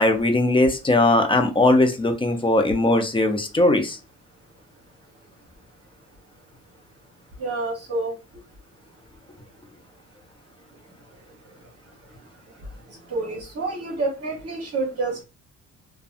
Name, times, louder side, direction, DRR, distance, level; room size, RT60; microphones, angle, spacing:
voice 1, 0.0-4.0, left 2 dB, 15° left, 6 dB, 0.6 m, -19 dB
voice 2, 7.4-8.1 13.1-15.2, right 3 dB, 50° right, -1 dB, 1.0 m, -28 dB
2.6 x 2.2 x 2.5 m, 0.29 s
cardioid pair, 90°, 30 cm